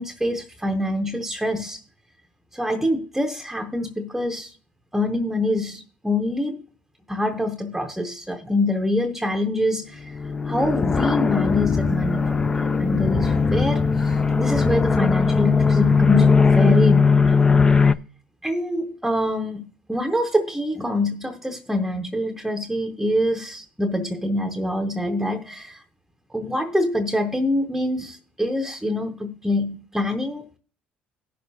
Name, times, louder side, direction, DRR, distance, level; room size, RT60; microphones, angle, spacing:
voice 1, 0.0-1.8 2.5-4.5 4.9-6.6 7.1-10.2 10.4-17.5 18.4-25.8 26.3-30.6, left 1 dB, 5° right, 0.8 m, -25 dB
sound 1, 10.1-17.9, left 5 dB, 20° left, 0.4 m, -19 dB
17.5 x 6.5 x 2.7 m
supercardioid pair, 95°, 4 cm